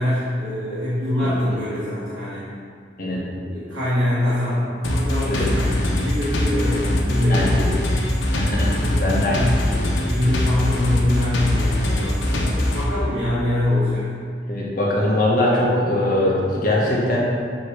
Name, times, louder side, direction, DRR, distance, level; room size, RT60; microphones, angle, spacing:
voice 1, 0.0-2.4 3.0-8.0 8.6-9.6 10.0-14.1, left 1 dB, 90° right, -12 dB, 1.6 m, -24 dB
sound 1, 4.8-12.8, left 1 dB, 90° left, 1.0 m, -22 dB
voice 2, 8.3-9.4 9.7-9.9 14.5-17.2, left 1 dB, 50° left, -5 dB, 1.6 m, -21 dB
7.8 x 3.3 x 6.3 m, 2.2 s
head